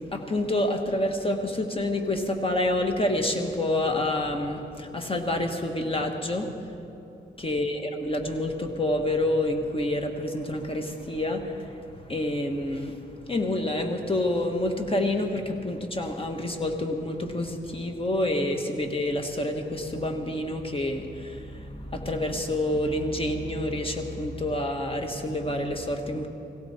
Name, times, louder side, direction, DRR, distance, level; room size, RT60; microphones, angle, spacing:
voice 1, 0.1-6.5 7.4-11.8 12.1-13.0 13.3-26.3, left 1 dB, 30° left, 3 dB, 1.5 m, -28 dB
17.5 x 17.0 x 4.3 m, 2.8 s
wide cardioid pair, 85°, 20 cm